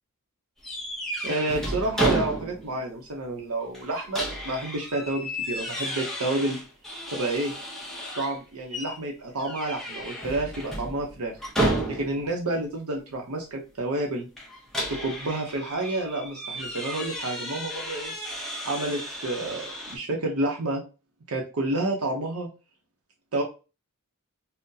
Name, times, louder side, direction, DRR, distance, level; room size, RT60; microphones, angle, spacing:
sound 1, 0.6-2.8 3.1-3.2 3.7-8.4 8.7-9.0 9.4-12.3 14.4-20.0, right 1 dB, ahead, 0.7 m, -32 dB
voice 1, 1.2-6.6 7.1-7.5 8.1-11.3 11.9-14.3 14.9-18.1 18.6-20.8 21.3-22.5 23.3-23.4, right 2 dB, 80° right, 1 dB, 0.7 m, -29 dB
3.7 x 2.1 x 2.7 m, 0.31 s
head